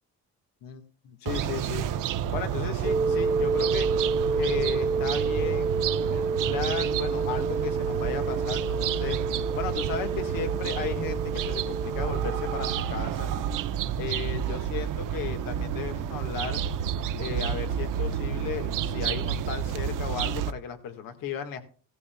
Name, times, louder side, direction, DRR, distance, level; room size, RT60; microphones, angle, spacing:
voice 1, 0.6-1.9 2.3-3.9 4.3-5.8 6.1-13.3 14.0-16.6 17.2-21.6, left 7 dB, 85° left, 7 dB, 1.7 m, -35 dB
sound 1, 1.3-20.5, right 9 dB, 70° right, 0.7 m, -30 dB
sound 2, 1.4-19.0, left 4 dB, 55° left, 2.4 m, -58 dB
sound 3, 2.8-12.8, right 4 dB, 15° right, 0.8 m, -29 dB
16.5 x 13.5 x 2.3 m, 0.39 s
cardioid pair, 95°, 33 cm